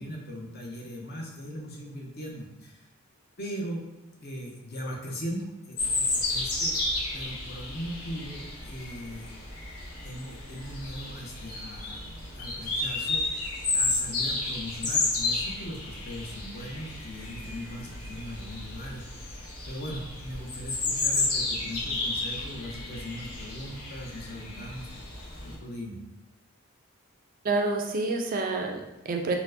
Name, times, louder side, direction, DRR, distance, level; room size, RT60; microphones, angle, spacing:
voice 1, 0.0-2.8 3.4-3.8 4.2-6.8 7.1-9.4 10.0-12.0 12.3-13.2 13.7-24.9 25.4-26.0, equal, 45° left, -1 dB, 0.6 m, -39 dB
sound 1, 5.8-25.5, left 2 dB, 85° left, 0.9 m, -32 dB
voice 2, 27.4-29.4, right 3 dB, 40° right, 3 dB, 0.3 m, -28 dB
4.3 x 2.1 x 2.6 m, 1.0 s
head